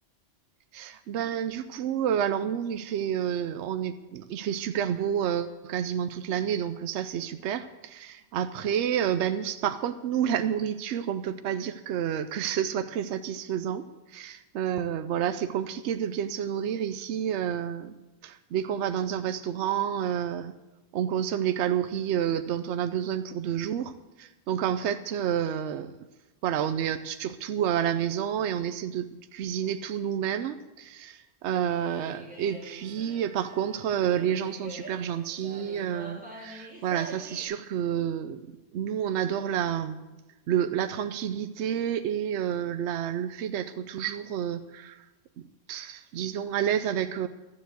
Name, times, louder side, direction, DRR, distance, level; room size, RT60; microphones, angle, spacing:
voice 1, 0.7-13.9 14.1-18.0 18.2-20.5 20.9-25.9 26.4-38.4 38.7-40.1 40.5-45.0 45.4-47.3, right 9 dB, 80° right, 10 dB, 0.9 m, -29 dB
sound 1, 31.5-37.4, right 1 dB, 5° right, 2.5 m, -45 dB
12.5 x 7.3 x 8.0 m, 1.1 s
omnidirectional pair, 1.2 m